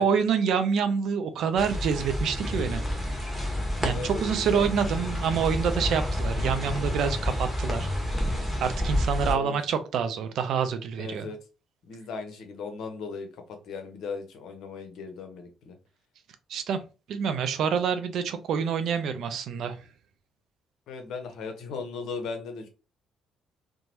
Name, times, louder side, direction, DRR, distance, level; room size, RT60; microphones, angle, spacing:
voice 1, 0.0-2.8 3.8-7.9 8.6-11.3 16.5-16.8 17.1-19.8, right 7 dB, 60° right, 0.4 m, -27 dB
sound 1, 1.6-9.3, left 1 dB, ahead, 1.2 m, -29 dB
voice 2, 3.9-4.9 9.2-9.6 11.0-11.4 11.8-13.3 13.6-15.7 20.9-22.7, left 4 dB, 60° left, 0.7 m, -37 dB
2.9 x 2.2 x 2.8 m
figure-of-eight pair, 45°, 0 cm